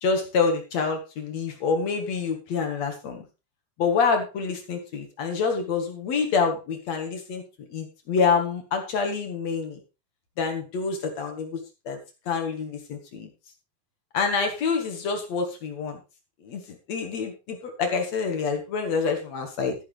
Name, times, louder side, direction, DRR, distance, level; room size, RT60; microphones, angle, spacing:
voice 1, 0.0-3.2 3.8-7.4 7.7-9.8 10.4-11.6 11.9-12.0 12.3-13.3 14.1-16.0 16.4-19.8, left 5 dB, 55° left, 5 dB, 2.2 m, -27 dB
12.5 x 10.5 x 3.3 m, 0.29 s
omnidirectional pair, 4.7 m